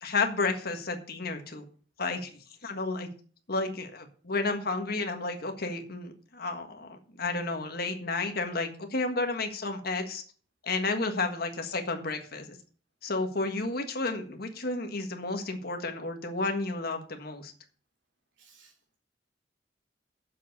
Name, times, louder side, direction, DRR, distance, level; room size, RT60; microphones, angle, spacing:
voice 1, 0.0-1.6 2.0-2.3 2.6-3.1 3.5-10.2 10.6-12.6 13.0-17.5, left 3 dB, 55° left, 5 dB, 1.6 m, -32 dB
voice 2, 18.4-19.0, right 5 dB, 75° right, -2 dB, 3.3 m, -60 dB
7.4 x 7.2 x 6.8 m, 0.42 s
head